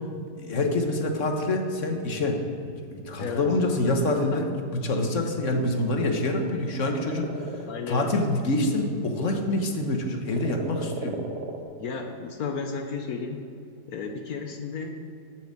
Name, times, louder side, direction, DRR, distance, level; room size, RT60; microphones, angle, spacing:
voice 1, 0.4-2.4 2.9-4.4 4.8-7.3 7.9-11.2, left 2 dB, 50° left, 4 dB, 1.4 m, -26 dB
sound 1, 5.3-9.6 10.3-11.6, right 4 dB, 75° right, 1.8 m, -39 dB
voice 2, 7.7-8.2 11.8-13.4 13.9-15.0, left 5 dB, 65° left, 4 dB, 1.2 m, -33 dB
9.3 x 7.2 x 7.5 m, 2.5 s
omnidirectional pair, 1.8 m